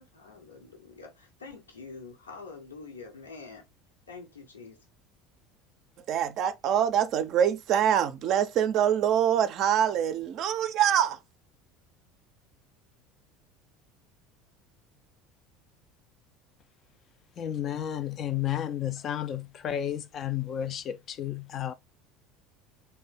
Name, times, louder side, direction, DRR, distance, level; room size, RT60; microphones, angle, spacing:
voice 1, 0.0-3.7 4.1-4.8, left 4 dB, 85° left, 0.9 m, -46 dB
voice 2, 6.1-11.2, right 9 dB, 50° right, 0.4 m, -25 dB
voice 3, 17.4-21.7, left 10 dB, 40° left, 0.3 m, -32 dB
3.2 x 2.1 x 3.8 m
figure-of-eight pair, 70°, 0 cm